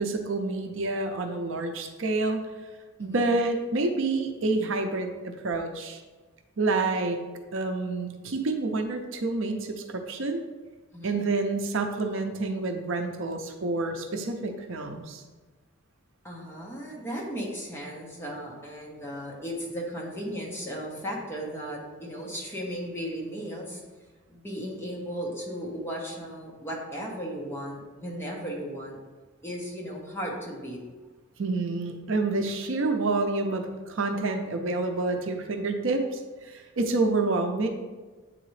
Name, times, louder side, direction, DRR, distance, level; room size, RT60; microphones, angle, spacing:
voice 1, 0.0-2.4 3.0-6.0 6.6-7.2 7.5-10.4 11.0-15.2 31.4-37.7, right 3 dB, 65° right, 4 dB, 0.6 m, -28 dB
voice 2, 16.2-23.8 24.3-29.0 29.4-30.8, equal, 10° left, -3 dB, 1.0 m, -36 dB
8.5 x 3.8 x 3.2 m, 1.3 s
head